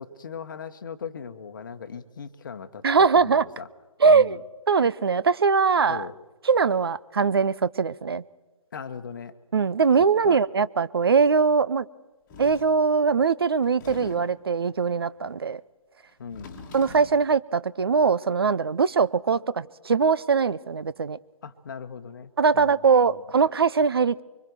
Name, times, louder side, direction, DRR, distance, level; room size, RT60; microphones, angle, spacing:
voice 1, 0.0-3.7 4.1-4.4 5.9-6.1 8.7-9.3 10.2-10.4 16.2-16.6 21.4-22.9, left 6 dB, 35° left, 9 dB, 1.2 m, -39 dB
voice 2, 2.8-3.4 4.0-4.4 4.7-6.1 6.5-8.2 9.5-11.9 12.4-15.6 16.7-21.2 22.4-24.2, right 5 dB, 45° right, 18 dB, 0.6 m, -21 dB
sound 1, 12.3-12.8 13.6-14.5 16.1-17.3, left 3 dB, 10° left, 1.8 m, -43 dB
24.5 x 24.0 x 4.7 m, 1.2 s
figure-of-eight pair, 150°, 18 cm